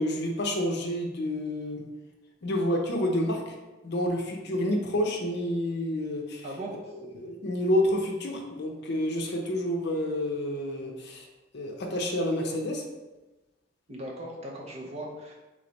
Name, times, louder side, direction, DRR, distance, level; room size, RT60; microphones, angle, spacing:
voice 1, 0.0-1.8 2.4-3.5 3.8-6.4 7.1-11.3 11.5-12.8, left 1 dB, 55° left, 2 dB, 0.6 m, -29 dB
voice 2, 13.9-15.3, right 1 dB, 35° right, -2 dB, 0.7 m, -38 dB
3.5 x 3.2 x 3.9 m, 1.1 s
head